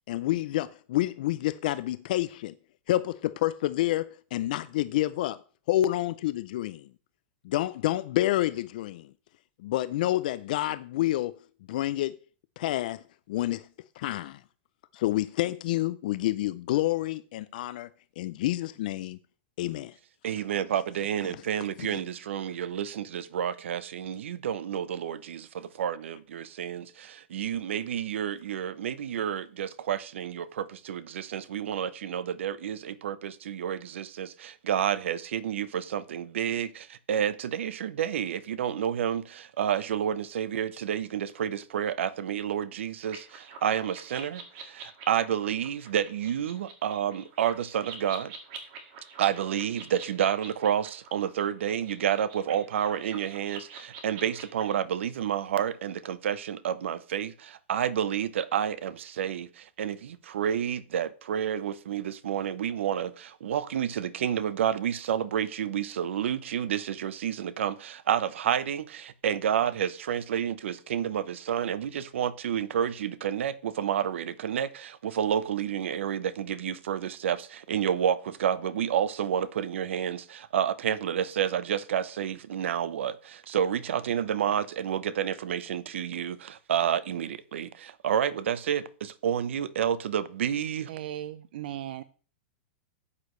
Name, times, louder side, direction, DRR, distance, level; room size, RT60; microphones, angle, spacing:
voice 1, 0.1-2.5 2.9-5.4 5.7-6.9 7.4-9.1 9.6-11.4 11.7-12.2 12.6-13.7 14.0-14.4 14.9-17.9 18.2-19.2 19.6-19.9 21.2-21.3 21.9-22.0, left 15 dB, 45° left, 0.4 m, -28 dB
voice 2, 20.2-48.3 49.2-90.9, right 9 dB, 85° right, 0.8 m, -30 dB
sound 1, 43.0-54.8, right 5 dB, 35° right, 2.0 m, -46 dB
voice 3, 90.9-92.0, right 12 dB, 50° right, 0.5 m, -37 dB
12.5 x 8.5 x 3.1 m
supercardioid pair, 180°, 6 cm